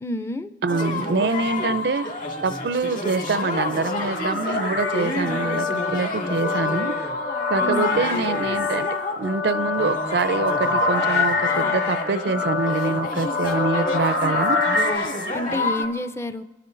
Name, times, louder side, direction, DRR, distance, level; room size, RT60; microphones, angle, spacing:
voice 1, 0.0-0.5 7.6-8.0 15.3-16.4, left 1 dB, 15° left, 0.5 m, -29 dB
voice 2, 0.6-2.1 2.4-6.9 7.5-14.6, right 4 dB, 65° right, 0.5 m, -25 dB
sound 1, 0.7-15.8, left 2 dB, 50° left, 2.1 m, -30 dB
sound 2, 2.5-15.9, left 3 dB, 65° left, 2.0 m, -28 dB
sound 3, 4.8-15.0, left 6 dB, 80° left, 0.9 m, -29 dB
28.0 x 12.5 x 3.8 m
head